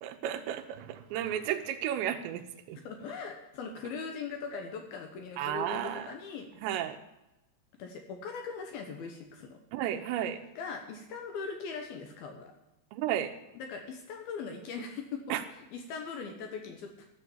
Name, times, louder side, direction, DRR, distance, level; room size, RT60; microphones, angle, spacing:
voice 1, 0.0-2.8 5.4-6.1 6.6-7.0 9.7-10.4 12.9-13.4 15.3-15.4, right 11 dB, 85° right, 7 dB, 3.0 m, -33 dB
voice 2, 2.8-6.5 7.8-9.6 10.6-12.5 13.6-17.1, left 5 dB, 70° left, 4 dB, 2.6 m, -40 dB
13.0 x 6.9 x 7.2 m, 0.93 s
omnidirectional pair, 5.0 m